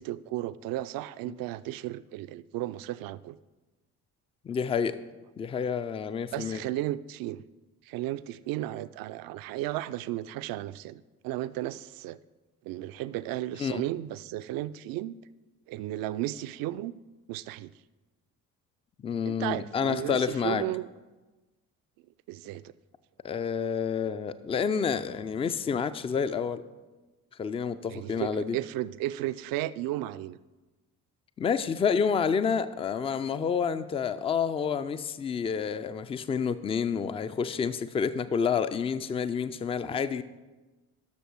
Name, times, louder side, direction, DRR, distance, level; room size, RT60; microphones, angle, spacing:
voice 1, 0.0-3.4 6.3-7.4 7.9-12.2 12.6-15.2 15.7-17.0 17.3-17.7 19.3-20.9 22.3-22.7 27.9-30.4, right 14 dB, 50° right, 15 dB, 0.5 m, -34 dB
voice 2, 4.4-5.0 5.4-6.6 13.6-13.8 19.0-20.7 23.2-26.6 27.4-28.6 31.4-40.2, left 6 dB, 15° left, 13 dB, 0.3 m, -29 dB
12.0 x 6.5 x 4.6 m, 1.2 s
figure-of-eight pair, 45°, 47 cm